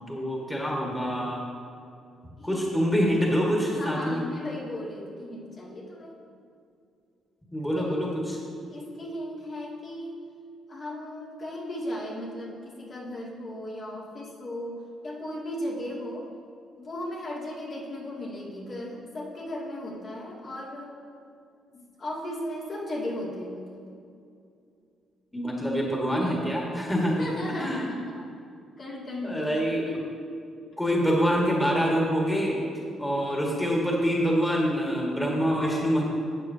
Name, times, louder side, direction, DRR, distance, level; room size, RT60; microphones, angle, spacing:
voice 1, 0.0-1.4 2.4-4.2 7.5-8.4 25.3-27.3 27.6-27.8 29.2-29.8 30.8-32.6 33.0-36.0, equal, 10° left, -3 dB, 1.8 m, -25 dB
voice 2, 2.4-2.7 3.6-6.1 7.8-8.2 8.7-10.2 10.7-16.3 16.8-20.9 21.7-23.9 26.9-28.2 28.8-30.1, left 1 dB, 50° left, -6 dB, 2.4 m, -36 dB
12.5 x 8.3 x 2.8 m, 2.4 s
cardioid pair, 90°, 0 cm